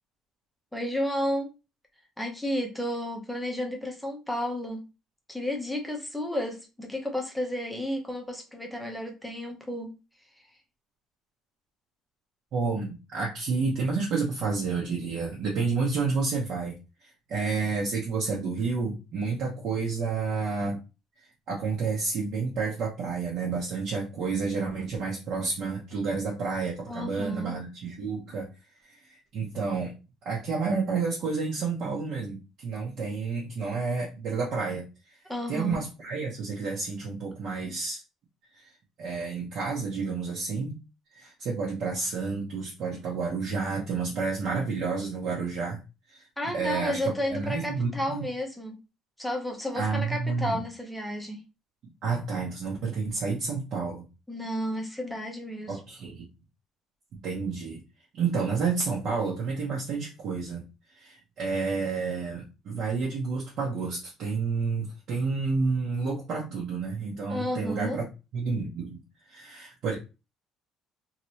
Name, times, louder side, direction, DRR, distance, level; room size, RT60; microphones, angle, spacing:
voice 1, 0.7-1.5 2.2-4.8 5.3-9.9 26.9-27.5 35.3-35.8 46.4-48.8 49.2-51.4 54.3-55.8 67.3-68.0, left 1 dB, ahead, 1 dB, 0.7 m, -32 dB
voice 2, 12.5-16.7 17.0-20.8 21.2-28.5 28.8-29.9 30.2-35.2 35.5-38.0 38.5-38.6 39.0-40.8 41.1-45.8 46.1-46.3 46.5-48.3 49.8-50.6 52.0-54.1 55.7-56.3 57.1-57.8 58.1-60.6 60.9-68.1 68.3-69.0 69.3-70.0, right 4 dB, 45° right, -3 dB, 0.8 m, -30 dB
3.1 x 2.9 x 2.7 m, 0.28 s
cardioid pair, 180°, 0 cm